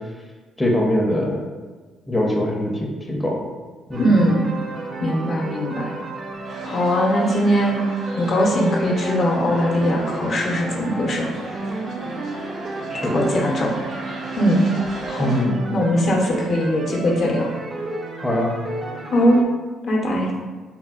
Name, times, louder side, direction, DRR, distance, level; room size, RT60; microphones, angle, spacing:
voice 1, 0.6-1.5 2.1-3.4 3.9-4.1 12.9-13.2 15.2-15.5 18.2-18.5, left 1 dB, 15° left, -2 dB, 0.5 m, -22 dB
sound 1, 3.9-19.4, right 2 dB, 45° right, 0.4 m, -32 dB
voice 2, 4.0-4.5 5.0-5.9 6.6-7.8 8.1-11.3 13.1-13.7 14.4-14.6 15.1-15.3 15.7-17.5 19.1-19.4 19.8-20.3, equal, 55° left, -1 dB, 0.6 m, -20 dB
sound 2, 6.4-15.4, right 1 dB, 75° right, 0.8 m, -37 dB
3.4 x 2.0 x 2.3 m, 1.3 s
supercardioid pair, 65°, 0 cm